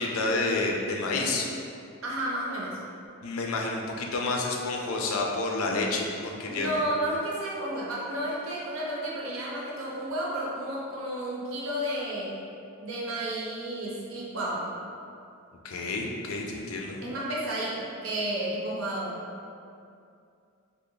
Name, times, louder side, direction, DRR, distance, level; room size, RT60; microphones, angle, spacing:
voice 1, 0.0-1.5 3.2-6.8 15.6-17.0, left 3 dB, 70° left, 0 dB, 0.4 m, -29 dB
voice 2, 2.0-2.8 6.5-12.4 12.8-14.7 17.0-19.2, right 1 dB, 70° right, -4 dB, 0.7 m, -32 dB
3.2 x 2.0 x 3.7 m, 2.5 s
head